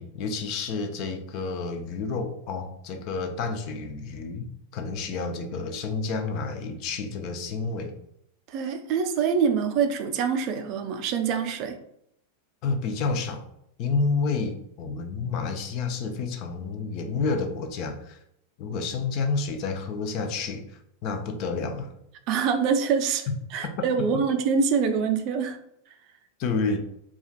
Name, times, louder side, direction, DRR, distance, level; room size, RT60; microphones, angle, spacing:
voice 1, 0.0-7.9 12.6-13.4 13.8-18.2 18.6-20.6 21.0-21.9 23.6-24.2 26.4-26.8, left 4 dB, 40° left, 5 dB, 0.5 m, -30 dB
voice 2, 8.5-11.8 22.3-25.6, right 6 dB, 40° right, 6 dB, 0.4 m, -25 dB
4.3 x 2.3 x 2.3 m, 0.75 s
figure-of-eight pair, 90°, 0 cm